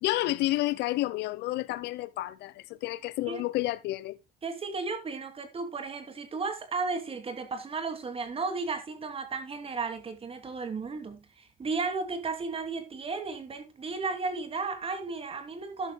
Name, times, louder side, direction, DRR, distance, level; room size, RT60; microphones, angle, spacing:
voice 1, 0.0-4.2, left 17 dB, 85° left, 0.8 m, -30 dB
voice 2, 4.4-15.9, right 4 dB, 35° right, 2.5 m, -34 dB
13.0 x 11.0 x 2.2 m
cardioid pair, 110°, 17 cm